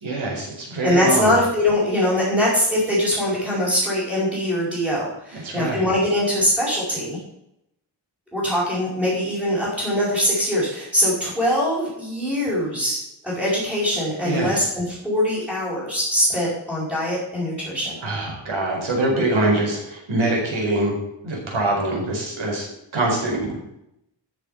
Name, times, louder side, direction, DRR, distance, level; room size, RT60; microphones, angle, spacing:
voice 1, 0.0-1.3 5.3-5.9 14.2-14.7 18.0-21.0 21.2-22.7 22.9-23.6, right 2 dB, 75° right, -1 dB, 5.1 m, -24 dB
voice 2, 0.8-7.2 8.3-18.0, left 1 dB, ahead, -10 dB, 5.3 m, -22 dB
13.5 x 7.0 x 5.8 m, 0.81 s
wide cardioid pair, 150°, 47 cm